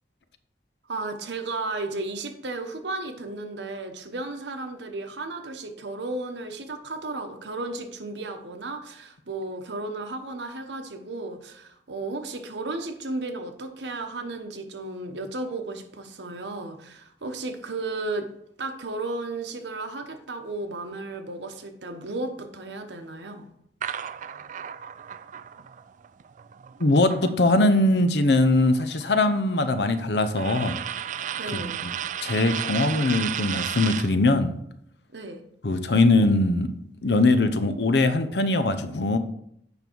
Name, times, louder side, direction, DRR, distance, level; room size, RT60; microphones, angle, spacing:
voice 1, 0.9-18.3 18.6-23.5 31.3-31.8 35.1-35.4, right 2 dB, 80° right, 6 dB, 1.1 m, -34 dB
sound 1, 23.8-27.9 28.2-34.2, right 9 dB, 45° right, 0.3 m, -34 dB
voice 2, 26.8-30.8 31.5-31.9 32.2-34.5 35.6-36.7 37.0-39.2, left 2 dB, 70° left, 10 dB, 0.7 m, -21 dB
8.1 x 5.3 x 4.5 m, 0.73 s
head